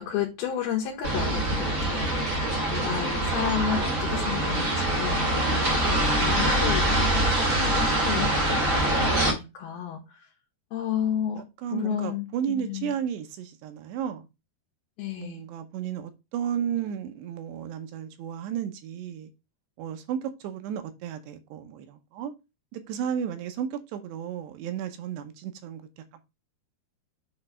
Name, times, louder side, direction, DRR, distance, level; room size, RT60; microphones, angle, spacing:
voice 1, 0.0-5.3 5.8-6.9 7.5-10.3 10.7-11.4 11.7-12.9 15.0-15.4, left 9 dB, 70° left, 3.0 m, -32 dB
sound 1, 1.0-9.3, right 1 dB, 40° right, 2.1 m, -24 dB
voice 2, 5.5-5.9 11.4-14.3 15.2-19.3 19.8-22.3 22.7-26.2, right 9 dB, 80° right, 2.9 m, -33 dB
8.1 x 3.2 x 5.3 m
omnidirectional pair, 4.8 m